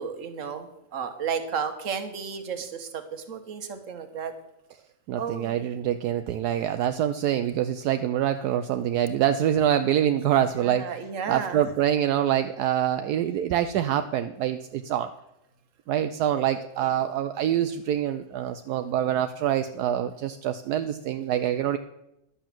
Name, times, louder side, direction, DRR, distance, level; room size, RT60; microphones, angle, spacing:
voice 1, 0.0-4.3 5.2-5.6 10.5-11.6 16.8-17.0, right 6 dB, 55° right, 8 dB, 1.5 m, -33 dB
voice 2, 5.1-10.9 11.3-15.1 15.9-21.8, right 10 dB, 75° right, 9 dB, 1.1 m, -25 dB
11.5 x 7.1 x 7.4 m, 0.88 s
omnidirectional pair, 1.7 m